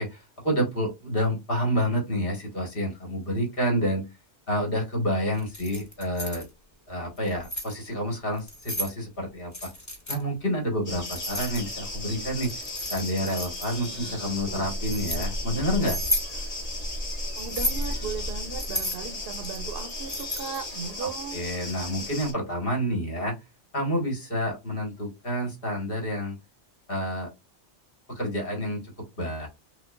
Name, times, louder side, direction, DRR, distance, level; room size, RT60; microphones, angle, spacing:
voice 1, 0.0-4.1 4.5-6.4 6.9-9.7 10.1-12.5 12.9-16.0 21.0-23.3 23.7-26.4 26.9-27.3 28.1-28.8 29.2-29.5, equal, 55° left, 1.9 m, -29 dB
Keys jangling, 5.4-6.4 7.2-7.7 8.4-8.9 9.5-10.2 11.1-11.9 12.4-13.8 14.5-15.2 15.8-16.3 17.4-17.9 18.6-20.7, left 1 dB, 15° left, 1.1 m, -33 dB
sound 1, 10.9-22.3, left 1 dB, 35° left, 1.2 m, -34 dB
voice 2, 13.8-14.7 17.3-21.4, right 6 dB, 60° right, 0.8 m, -37 dB
5.8 x 2.3 x 2.5 m
omnidirectional pair, 1.2 m